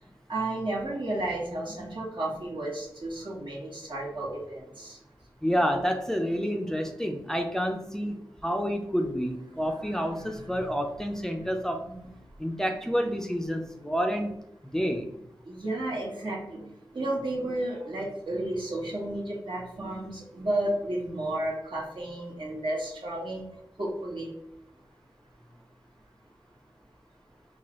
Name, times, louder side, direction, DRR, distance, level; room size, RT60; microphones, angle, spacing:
voice 1, 0.3-5.0 9.6-10.0 10.3-10.7 11.4-11.5 11.9-12.1 12.9-13.0 15.5-23.4 23.8-24.3, right 1 dB, 70° right, -4 dB, 1.4 m, -33 dB
voice 2, 5.4-11.9 12.4-14.3 14.6-15.1, equal, 5° left, 3 dB, 0.4 m, -29 dB
4.7 x 2.2 x 3.0 m, 0.81 s
wide cardioid pair, 85°, 8 cm